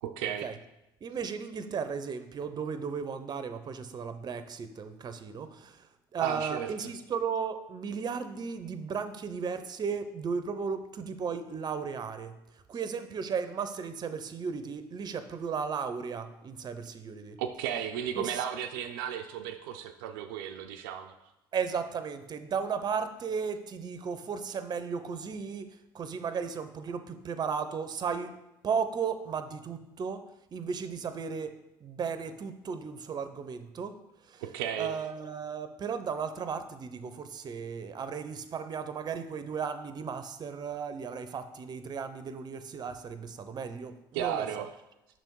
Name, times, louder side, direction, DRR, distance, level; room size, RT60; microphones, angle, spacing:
voice 1, 0.0-0.5 6.2-6.9 17.4-21.1 34.4-35.0 44.1-44.7, right 9 dB, 80° right, 6 dB, 0.4 m, -34 dB
voice 2, 1.0-12.4 12.7-17.4 18.2-18.4 21.5-28.4 28.6-34.0 34.2-34.4 34.8-44.7, right 6 dB, 40° right, 10 dB, 0.6 m, -35 dB
6.1 x 3.4 x 4.6 m, 0.92 s
hypercardioid pair, 70°, 11 cm